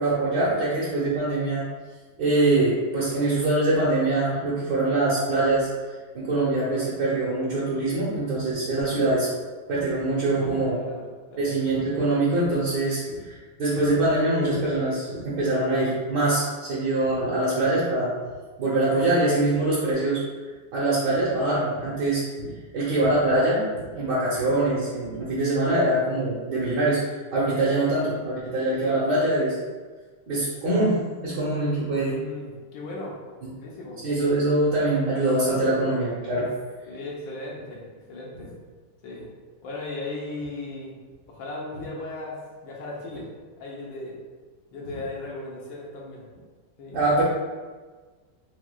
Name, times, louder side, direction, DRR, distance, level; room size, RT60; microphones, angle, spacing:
voice 1, 0.0-1.6 2.2-5.7 6.1-9.3 9.7-10.8 11.4-18.1 18.6-20.2 20.7-27.0 27.3-29.6 30.3-31.0 31.2-32.2 34.0-36.5 46.9-47.2, right 2 dB, 65° right, -9 dB, 1.4 m, -23 dB
voice 2, 10.4-11.5 32.0-33.2 33.6-34.1 36.9-38.5 39.0-39.2 39.6-41.0 41.3-43.3 43.6-44.2 44.7-46.3 46.8-47.0, left 2 dB, 75° left, -4 dB, 1.4 m, -37 dB
6.0 x 2.3 x 2.2 m, 1.4 s
omnidirectional pair, 2.2 m